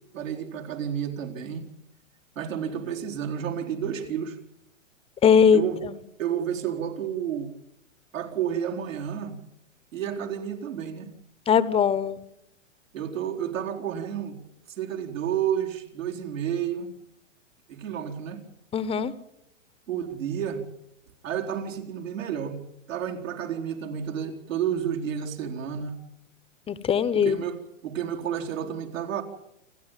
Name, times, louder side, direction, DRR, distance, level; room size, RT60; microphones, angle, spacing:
voice 1, 0.1-1.7 2.4-4.4 5.5-5.8 6.2-7.5 8.1-9.4 9.9-11.1 12.9-14.4 14.7-16.9 17.7-18.4 19.9-20.6 21.2-22.6 22.9-26.0 27.1-29.2, right 9 dB, 75° right, 2 dB, 4.4 m, -31 dB
voice 2, 5.2-5.9 11.5-12.2 18.7-19.1 26.7-27.4, left 7 dB, 15° left, 16 dB, 0.9 m, -21 dB
28.0 x 12.5 x 9.2 m, 0.84 s
hypercardioid pair, 130°, 39 cm